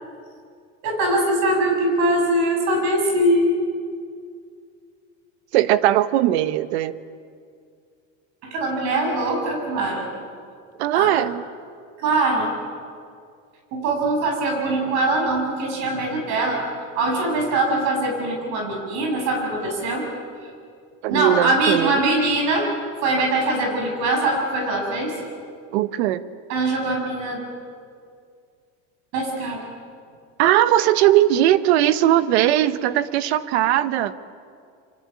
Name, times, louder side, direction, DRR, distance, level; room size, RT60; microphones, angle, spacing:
voice 1, 0.8-3.6 8.4-10.1 10.9-11.1 12.0-12.5 13.7-16.6 16.9-20.1 21.1-22.7 23.0-25.2 26.5-27.4 29.1-29.6, right 2 dB, 60° right, 2 dB, 7.5 m, -22 dB
voice 2, 5.5-7.0 10.8-11.4 21.0-22.0 25.7-26.2 30.4-34.1, right 13 dB, 90° right, 13 dB, 1.2 m, -19 dB
28.0 x 24.5 x 8.6 m, 2.3 s
cardioid pair, 140°, 31 cm